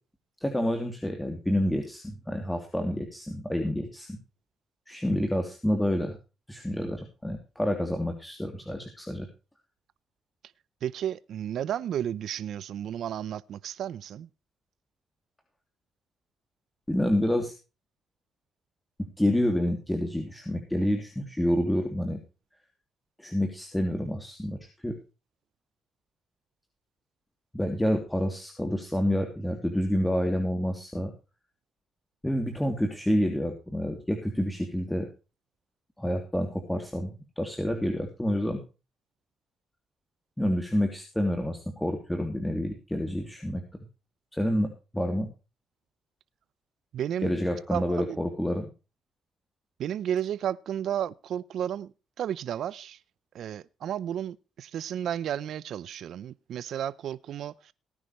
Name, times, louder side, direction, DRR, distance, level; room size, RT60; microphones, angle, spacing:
voice 1, 0.4-4.2 4.9-6.2 6.5-9.3 16.9-17.5 19.2-22.2 23.2-25.0 27.5-31.1 32.2-35.1 36.0-38.6 40.4-43.6 44.3-45.3 47.2-48.7, equal, 5° left, 3.0 m, -28 dB
voice 2, 10.8-14.3 46.9-47.4 47.7-48.2 49.8-51.9 52.2-53.0 53.3-57.7, right 10 dB, 70° right, 0.7 m, -33 dB
18.5 x 9.9 x 3.1 m
cardioid pair, 90°, 0 cm